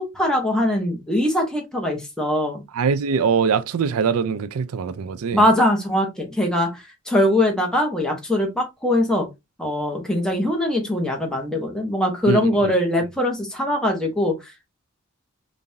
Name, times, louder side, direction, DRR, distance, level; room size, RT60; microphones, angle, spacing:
voice 1, 0.0-2.6 5.3-9.3 9.6-14.6, left 1 dB, 5° left, 1.1 m, -22 dB
voice 2, 2.7-5.4 12.3-12.7, right 6 dB, 75° right, 0.4 m, -22 dB
5.2 x 2.6 x 2.8 m
head